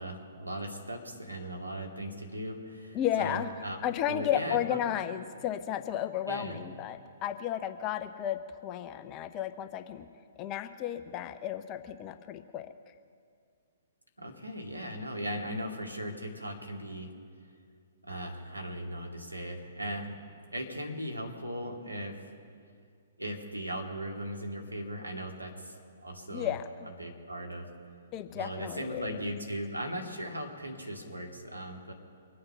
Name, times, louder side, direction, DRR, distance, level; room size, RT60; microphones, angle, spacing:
voice 1, 0.0-3.8 4.1-4.8 6.3-6.6 14.2-17.1 18.1-20.2 20.5-22.2 23.2-26.5 27.0-27.6 28.3-31.9, equal, 90° right, 2 dB, 2.3 m, -38 dB
voice 2, 2.9-10.1 10.4-13.0 26.3-26.9 28.1-29.2, left 10 dB, 25° left, 9 dB, 0.6 m, -33 dB
24.0 x 8.8 x 5.5 m, 2.2 s
figure-of-eight pair, 120°, 0 cm